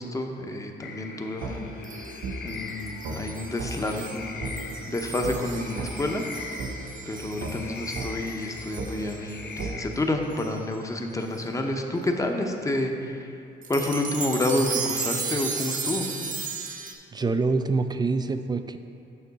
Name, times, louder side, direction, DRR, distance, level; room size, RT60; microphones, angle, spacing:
voice 1, 0.0-1.7 2.4-6.2 7.1-13.3 13.7-16.1, left 1 dB, 15° left, 3 dB, 0.7 m, -29 dB
sound 1, 0.8-9.9, left 4 dB, 55° left, 0.6 m, -40 dB
sound 2, 1.4-1.6 2.2-2.4 3.0-3.2 3.6-3.7 4.4-4.6 5.2-5.4 5.8-5.9 6.6-6.7 7.4-7.6 8.0-8.1 8.8-8.9 9.6-9.7, right 4 dB, 80° right, 0.8 m, -33 dB
sound 3, 1.8-9.8 10.4-10.6 11.4-11.5 13.6-16.9, right 5 dB, 40° right, 0.8 m, -35 dB
voice 2, 17.1-18.8, right 3 dB, 20° right, 9 dB, 0.3 m, -25 dB
6.8 x 6.0 x 4.1 m, 2.6 s
cardioid pair, 90°, 20 cm